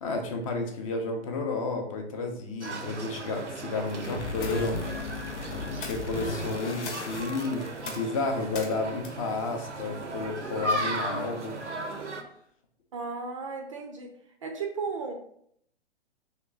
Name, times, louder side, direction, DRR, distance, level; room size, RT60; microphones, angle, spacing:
voice 1, 0.0-4.8 5.5-11.6, left 3 dB, 30° left, 3 dB, 0.6 m, -32 dB
sound 1, 2.6-12.2, right 1 dB, 85° right, 0.6 m, -36 dB
sound 2, 3.9-8.1, left 3 dB, 80° left, 0.6 m, -36 dB
sound 3, 4.4-10.5, left 3 dB, 45° left, 1.0 m, -45 dB
voice 2, 12.9-14.1 14.4-15.1, right 4 dB, 30° right, 2 dB, 0.4 m, -34 dB
3.2 x 2.9 x 3.7 m, 0.67 s
figure-of-eight pair, 120°, 34 cm